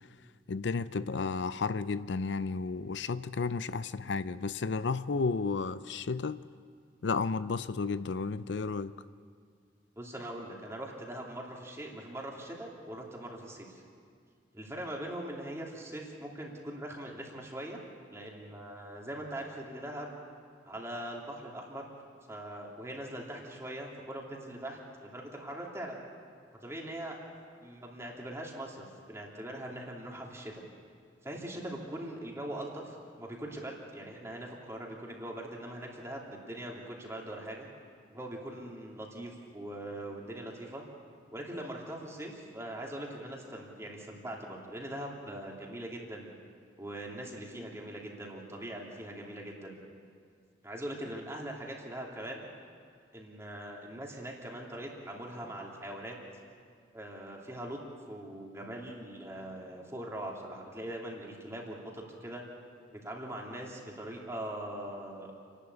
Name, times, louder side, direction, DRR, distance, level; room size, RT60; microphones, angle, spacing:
voice 1, 0.5-6.4 7.0-8.9, left 4 dB, 75° left, 0.5 m, -32 dB
voice 2, 10.0-13.8 14.5-17.8 18.1-20.2 20.7-21.8 22.3-26.0 26.6-27.2 27.6-30.6 31.2-37.7 38.1-40.8 41.3-46.3 46.8-49.8 50.6-52.4 53.1-56.1 56.9-57.8 58.1-62.4 62.9-65.3, right 1 dB, 15° right, 3.0 m, -41 dB
29.0 x 12.0 x 8.4 m
head